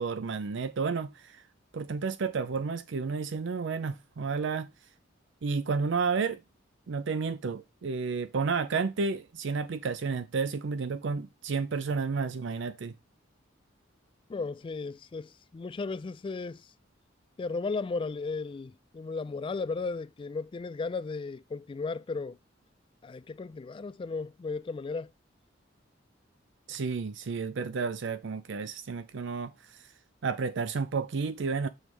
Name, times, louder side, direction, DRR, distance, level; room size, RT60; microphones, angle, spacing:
voice 1, 0.0-1.4 1.7-4.7 5.4-6.4 6.9-12.9 26.7-29.5 30.2-31.7, right 4 dB, 65° right, 0.5 m, -31 dB
voice 2, 14.3-16.7 17.4-22.4 23.0-25.1, left 4 dB, 25° left, 0.3 m, -35 dB
6.3 x 3.4 x 6.0 m
head